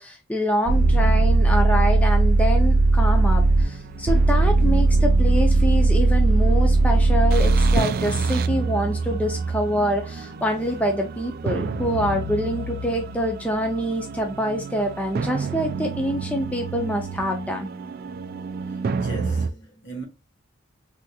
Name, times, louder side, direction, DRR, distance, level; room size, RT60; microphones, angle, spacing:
voice 1, 0.0-17.7, equal, 10° left, 0.5 m, -26 dB
sound 1, 0.7-19.5, right 3 dB, 50° right, 0.3 m, -21 dB
voice 2, 18.9-20.0, right 2 dB, 65° left, 1.5 m, -38 dB
3.5 x 2.9 x 2.2 m
head